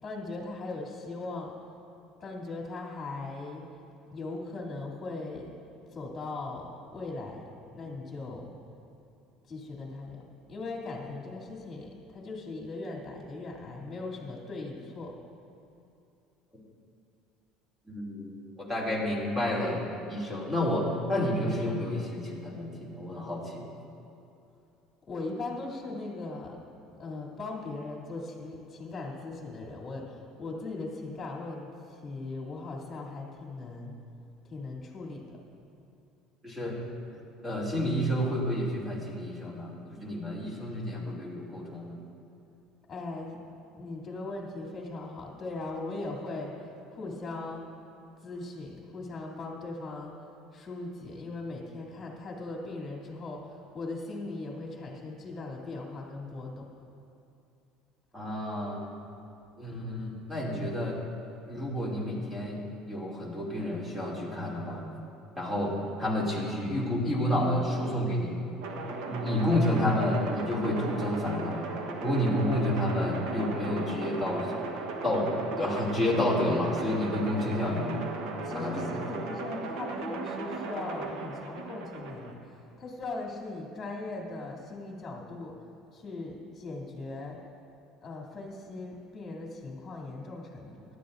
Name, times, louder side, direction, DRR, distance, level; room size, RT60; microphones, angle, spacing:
voice 1, 0.0-1.5 2.2-3.6 4.1-5.5 5.9-7.4 7.7-8.5 9.5-10.2 10.5-15.1 25.1-26.6 27.0-34.0 34.4-35.4 42.9-43.4 43.7-46.6 46.9-47.7 48.2-50.1 50.5-56.7 78.4-85.5 85.9-87.4 88.0-90.8, left 3 dB, 25° left, -2 dB, 2.7 m, -39 dB
voice 2, 17.8-19.8 20.1-23.7 36.4-36.8 37.4-42.0 58.1-58.8 59.6-61.0 61.5-62.6 62.9-64.8 65.4-68.3 69.0-71.7 72.0-74.6 75.0-78.0 78.5-79.0, left 1 dB, 10° right, -4 dB, 2.7 m, -30 dB
sound 1, 68.6-82.3, right 3 dB, 75° right, 1.1 m, -37 dB
17.5 x 12.0 x 2.6 m, 2.7 s
cardioid pair, 130°, 0 cm